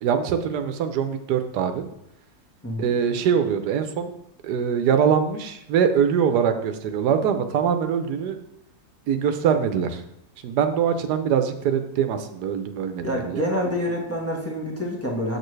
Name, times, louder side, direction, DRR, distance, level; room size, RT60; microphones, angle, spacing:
voice 1, 0.0-1.8 2.8-4.1 4.4-8.4 9.1-10.0 10.4-13.4, right 7 dB, 85° right, 8 dB, 1.3 m, -23 dB
voice 2, 2.6-2.9 13.0-15.4, equal, 10° left, -2 dB, 1.1 m, -27 dB
7.1 x 6.6 x 3.2 m, 0.78 s
omnidirectional pair, 1.7 m